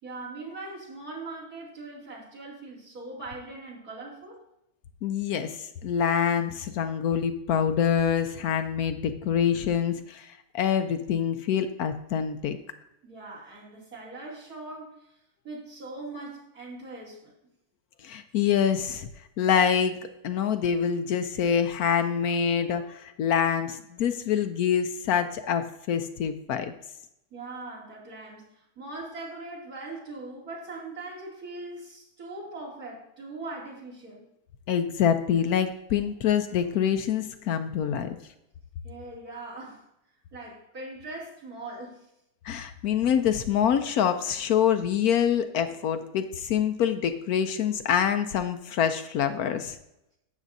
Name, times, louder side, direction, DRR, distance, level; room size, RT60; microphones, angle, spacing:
voice 1, 0.0-4.4 13.0-15.1 15.4-17.3 27.3-34.2 38.8-39.8 40.3-42.1, right 2 dB, 60° right, -5 dB, 3.2 m, -41 dB
voice 2, 5.0-10.3 10.5-12.6 18.0-19.1 19.4-20.0 20.2-26.7 34.7-38.2 42.4-49.8, left 8 dB, 70° left, 9 dB, 1.0 m, -25 dB
12.0 x 8.3 x 2.7 m, 0.83 s
omnidirectional pair, 1.7 m